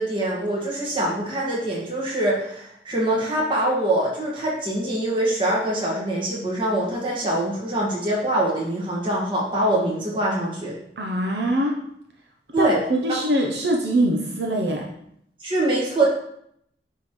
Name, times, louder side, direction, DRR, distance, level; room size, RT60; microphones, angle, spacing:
voice 1, 0.0-10.8 12.5-12.8 15.4-16.1, right 1 dB, 30° right, -4 dB, 1.7 m, -24 dB
voice 2, 11.0-11.7 12.6-14.9, right 1 dB, 70° right, 0 dB, 0.8 m, -23 dB
8.9 x 3.8 x 3.1 m, 0.71 s
head